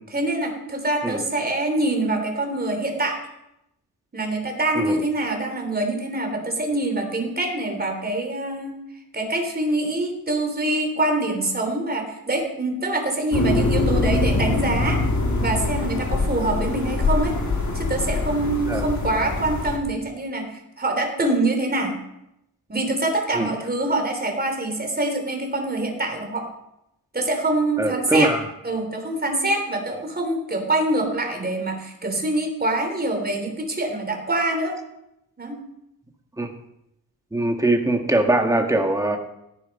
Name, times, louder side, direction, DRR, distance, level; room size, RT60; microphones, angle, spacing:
voice 1, 0.1-3.2 4.1-8.8 9.1-15.0 15.3-17.3 17.7-22.0 22.7-26.4 27.1-28.3 28.6-34.7 35.4-35.6, right 2 dB, 25° right, 3 dB, 3.3 m, -25 dB
sound 1, 13.3-19.8, left 2 dB, 50° left, 2.7 m, -23 dB
voice 2, 27.8-28.4 36.4-36.5 37.3-39.2, right 2 dB, 10° right, 3 dB, 1.7 m, -21 dB
17.0 x 11.0 x 5.4 m, 0.85 s
wide cardioid pair, 140°, 37 cm